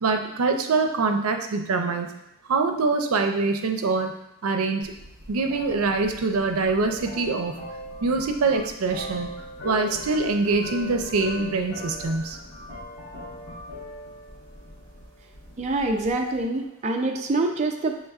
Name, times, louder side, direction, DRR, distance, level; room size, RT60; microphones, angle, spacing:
voice 1, 0.0-2.1 2.5-4.1 4.4-4.9 5.3-7.6 8.0-9.3 9.6-12.4, right 3 dB, 90° right, 5 dB, 0.5 m, -24 dB
sound 1, 4.8-16.4, left 1 dB, 60° left, 1.3 m, -40 dB
voice 2, 15.6-18.0, right 2 dB, 35° right, 3 dB, 0.4 m, -25 dB
6.4 x 3.2 x 2.4 m, 0.84 s
head